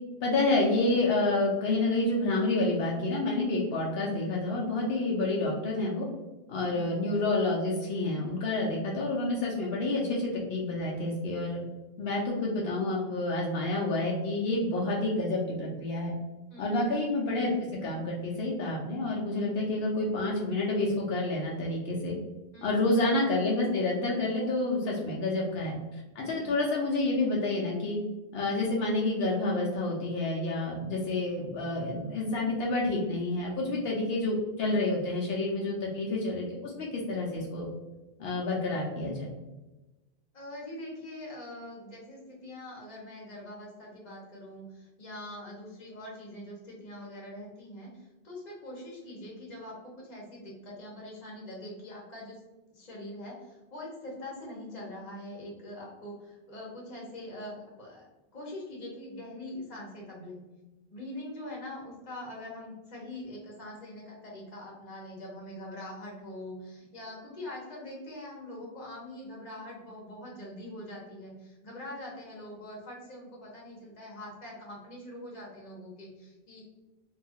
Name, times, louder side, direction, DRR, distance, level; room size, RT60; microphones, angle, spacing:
voice 1, 0.2-6.1 6.5-11.6 12.0-16.1 16.6-17.5 17.8-22.2 22.6-25.8 26.2-28.0 28.3-37.7 38.2-39.3, left 2 dB, 80° left, -3 dB, 0.8 m, -29 dB
voice 2, 16.5-16.9 22.5-22.9 26.2-26.5 35.6-35.8 40.3-52.4 52.7-58.1 58.3-60.4 60.9-76.6, left 1 dB, 45° left, -3 dB, 0.9 m, -43 dB
2.7 x 2.3 x 2.7 m, 1.1 s
omnidirectional pair, 1.0 m